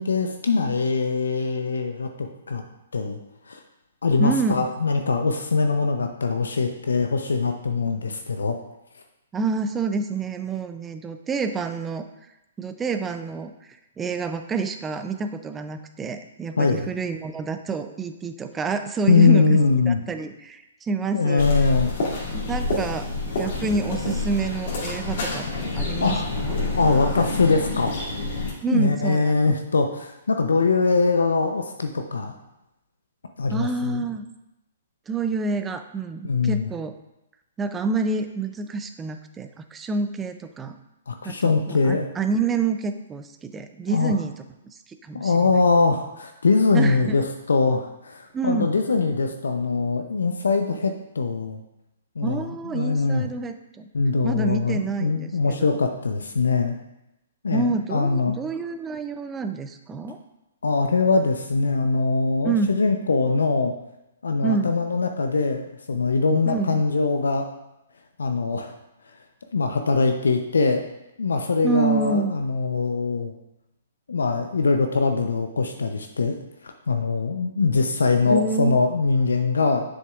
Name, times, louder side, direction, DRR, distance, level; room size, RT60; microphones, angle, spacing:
voice 1, 0.0-2.6 2.9-3.2 3.5-3.6 4.0-8.6 16.6-16.9 19.1-20.0 21.1-21.9 26.0-26.3 26.8-27.9 28.7-32.3 33.4-34.0 36.2-36.7 41.1-42.1 43.9-44.1 45.1-47.2 47.5-51.6 52.2-53.3 53.9-56.8 57.4-58.4 60.6-63.7 64.2-65.6 65.9-67.5 68.2-68.7 69.5-70.8 71.2-73.3 74.1-76.4 76.6-79.8, left 4 dB, 75° left, 5 dB, 0.6 m, -22 dB
voice 2, 4.2-4.7 9.3-12.1 12.6-19.6 19.9-21.5 22.3-26.5 28.6-29.5 33.5-34.3 35.1-36.9 37.6-40.8 41.2-44.4 45.0-45.5 46.7-47.2 48.3-48.7 52.2-53.9 54.2-55.8 57.5-60.2 62.4-62.7 64.4-64.7 66.5-66.8 71.6-72.3 78.3-78.8, right 4 dB, 15° right, 8 dB, 0.5 m, -28 dB
sound 1, 21.4-28.5, left 3 dB, 55° left, 2.4 m, -28 dB
7.5 x 6.4 x 2.4 m, 0.92 s
figure-of-eight pair, 125°, 0 cm